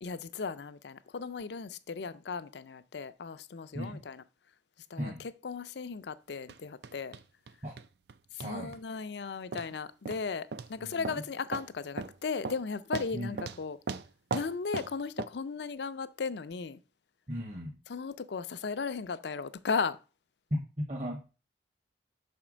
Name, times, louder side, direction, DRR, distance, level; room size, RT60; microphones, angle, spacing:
voice 1, 0.0-4.2 4.9-7.2 8.3-13.8 14.3-16.8 17.9-20.0, left 5 dB, 65° left, 0.5 m, -36 dB
sound 1, 6.5-6.6 6.8-7.5 7.8-8.1 8.4-8.8 9.5-9.7 10.1-10.2 10.5-10.7 11.0-11.2 11.5-11.7 12.0-12.1 12.4-12.6 12.9-13.6 13.9-14.9 15.2-15.3, right 4 dB, 60° right, 0.4 m, -37 dB
voice 2, 8.4-8.7 10.8-11.2 13.1-13.4 17.3-17.8 20.5-21.3, equal, 40° right, 1.1 m, -36 dB
5.7 x 4.3 x 6.2 m
head